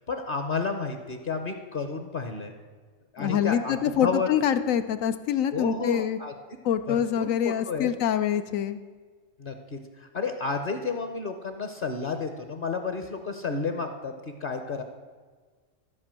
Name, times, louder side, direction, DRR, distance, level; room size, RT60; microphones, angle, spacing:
voice 1, 0.0-2.5 3.1-4.3 5.5-6.3 6.9-7.9 9.4-14.1 14.4-14.8, left 4 dB, 45° left, 6 dB, 0.9 m, -31 dB
voice 2, 3.2-6.2 6.6-8.8, left 9 dB, 85° left, 10 dB, 1.1 m, -25 dB
13.5 x 5.2 x 7.5 m, 1.4 s
omnidirectional pair, 1.3 m